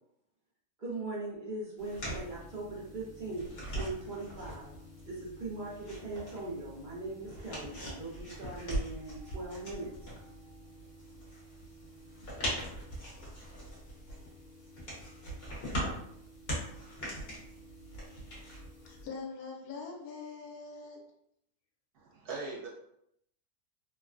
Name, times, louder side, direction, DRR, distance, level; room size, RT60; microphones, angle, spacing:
voice 1, 0.8-4.7 5.0-10.5, right 2 dB, 50° right, -6 dB, 0.6 m, -40 dB
sound 1, 1.8-19.1, equal, 45° left, 1.1 m, -41 dB
sound 2, 1.9-18.3, left 2 dB, 10° left, 0.7 m, -58 dB
voice 2, 18.9-21.0, left 4 dB, 75° left, -1 dB, 1.2 m, -43 dB
voice 3, 21.9-22.7, right 3 dB, 85° right, -5 dB, 1.3 m, -40 dB
3.1 x 2.2 x 2.4 m, 0.75 s
omnidirectional pair, 1.6 m